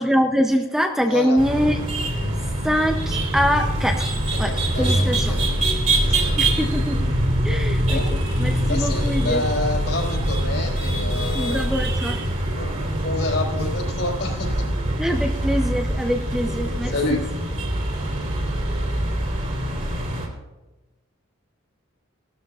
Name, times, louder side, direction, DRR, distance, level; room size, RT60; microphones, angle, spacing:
voice 1, 0.0-1.8 2.6-5.4 6.4-7.1 7.4-9.4 11.3-12.2 15.0-17.2, equal, ahead, 4 dB, 0.5 m, -24 dB
sound 1, 1.4-20.3, right 1 dB, 35° right, 2.9 m, -24 dB
voice 2, 4.5-4.9 5.3-5.5 6.0-6.4 7.8-8.1 8.7-11.7 12.6-14.6 16.9-17.2, left 2 dB, 60° left, -1 dB, 4.1 m, -28 dB
18.0 x 12.5 x 2.4 m, 1.1 s
head